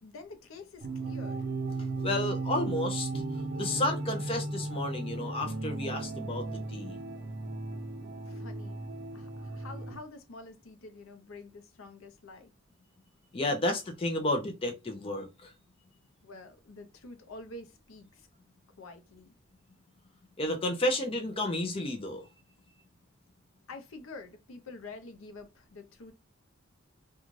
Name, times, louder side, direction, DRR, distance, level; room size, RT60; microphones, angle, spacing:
voice 1, 0.0-1.5 8.3-8.8 9.1-12.5 16.2-18.3 18.8-19.3 23.7-26.1, left 3 dB, 75° left, 0.6 m, -47 dB
sound 1, 0.8-10.0, right 3 dB, 55° right, 0.4 m, -36 dB
voice 2, 2.0-7.0 13.3-15.5 20.4-22.3, left 1 dB, 25° left, 0.4 m, -32 dB
2.5 x 2.3 x 3.0 m
head